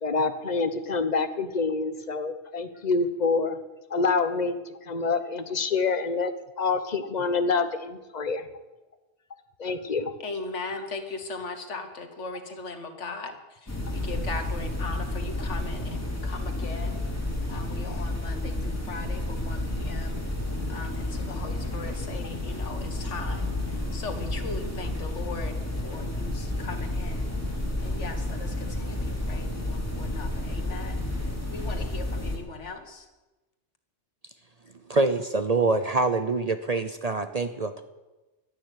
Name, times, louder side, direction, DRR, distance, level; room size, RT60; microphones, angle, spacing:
voice 1, 0.0-3.6 3.9-4.6 4.8-6.3 6.6-8.5 9.6-10.1, left 4 dB, 40° left, 10 dB, 1.2 m, -26 dB
voice 2, 10.2-13.3 13.6-17.0 17.5-20.2 20.7-23.5 23.9-27.3 27.8-31.0 31.5-33.1, left 3 dB, 75° left, 6 dB, 2.0 m, -39 dB
sound 1, 13.7-32.4, left 1 dB, 10° left, 3.1 m, -31 dB
voice 3, 34.9-37.8, right 3 dB, 40° right, 9 dB, 0.7 m, -25 dB
12.5 x 11.5 x 9.2 m, 1.1 s
omnidirectional pair, 1.2 m